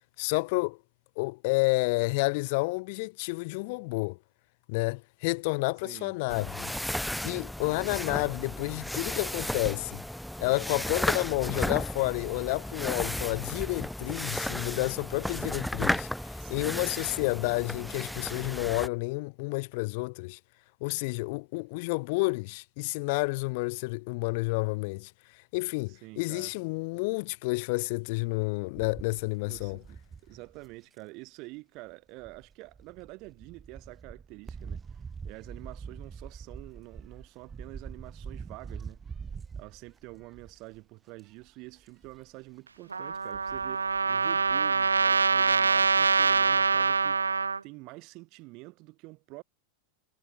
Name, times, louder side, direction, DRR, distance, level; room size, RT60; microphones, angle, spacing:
voice 1, 0.2-0.8 1.2-4.2 4.7-6.7 7.2-10.0 10.4-16.1 16.5-20.4 20.8-25.1 25.5-29.8, left 27 dB, 50° left, 2.0 m, -30 dB
sound 1, 6.3-18.9, left 1 dB, ahead, 0.4 m, -34 dB
voice 2, 16.4-16.9 25.9-26.5 29.4-34.8 35.2-39.0 39.5-47.2 47.6-49.4, right 24 dB, 40° right, 4.1 m, -47 dB
sound 2, 28.8-31.0 32.2-40.8 41.2-41.5 41.8-42.3 43.1-44.0 44.5-44.6 44.8-44.9, right 6 dB, 15° right, 1.5 m, -44 dB
Trumpet, 42.9-47.6, right 4 dB, 75° right, 0.8 m, -25 dB
figure-of-eight pair, 90°, 0 cm